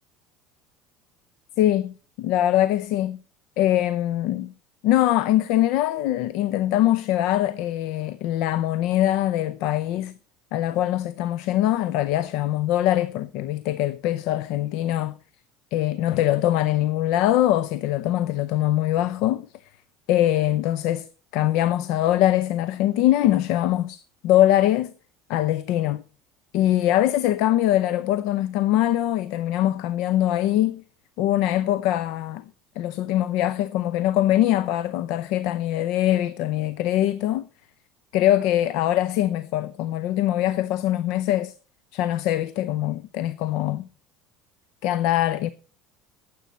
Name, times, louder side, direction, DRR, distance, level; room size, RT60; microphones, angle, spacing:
voice 1, 1.6-3.2 3.6-4.5 4.8-10.1 10.5-15.2 15.7-19.5 20.1-21.1 21.3-24.9 25.3-26.0 26.5-30.8 31.2-32.4 32.8-37.5 38.1-41.5 41.9-43.8 44.8-45.5, left 13 dB, 70° left, 0.6 m, -22 dB
19.0 x 7.9 x 4.1 m
supercardioid pair, 120°, 0 cm